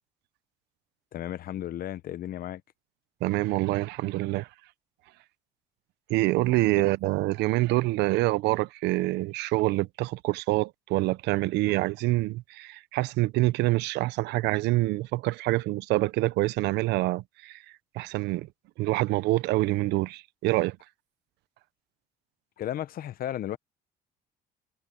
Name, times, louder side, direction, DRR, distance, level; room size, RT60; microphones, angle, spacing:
voice 1, 1.1-2.6 22.6-23.6, left 12 dB, 60° left, 1.0 m, -34 dB
voice 2, 3.2-4.5 6.1-17.6 17.9-18.5 18.8-20.8, right 19 dB, 85° right, 0.7 m, -26 dB
cardioid pair, 110°, 17 cm